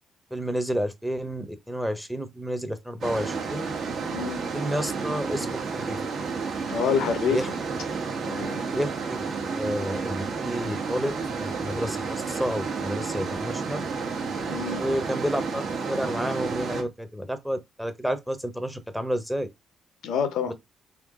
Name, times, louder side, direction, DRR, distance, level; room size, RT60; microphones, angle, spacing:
voice 1, 0.3-3.7 4.5-6.0 7.3-7.5 8.7-9.2 9.5-13.8 14.8-15.6 15.9-19.5, equal, ahead, 0.7 m, -30 dB
sound 1, 3.0-16.8, right 4 dB, 65° right, 1.3 m, -31 dB
voice 2, 4.1-4.4 6.7-7.5 8.2-8.6 14.5-14.8 20.0-20.5, left 7 dB, 80° left, 0.7 m, -27 dB
3.7 x 2.9 x 3.6 m
cardioid pair, 90°, 0 cm